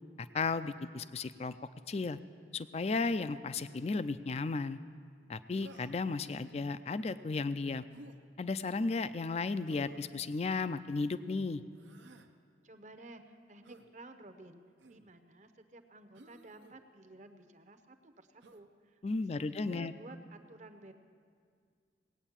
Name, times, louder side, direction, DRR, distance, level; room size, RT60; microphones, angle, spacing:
voice 1, 0.2-1.6 1.9-2.2 2.5-4.8 5.3-7.9 8.4-11.6 19.0-19.9, left 3 dB, 35° left, 14 dB, 0.4 m, -34 dB
Human voice, 5.6-6.2 7.9-8.2 9.7-10.1 11.7-12.3 13.6-13.9 14.8-15.1 16.1-16.8 18.4-18.6, right 2 dB, 80° right, 0.8 m, -55 dB
voice 2, 12.6-14.6 14.9-20.9, right 2 dB, 40° right, 8 dB, 0.8 m, -54 dB
18.0 x 9.0 x 7.3 m, 2.1 s
head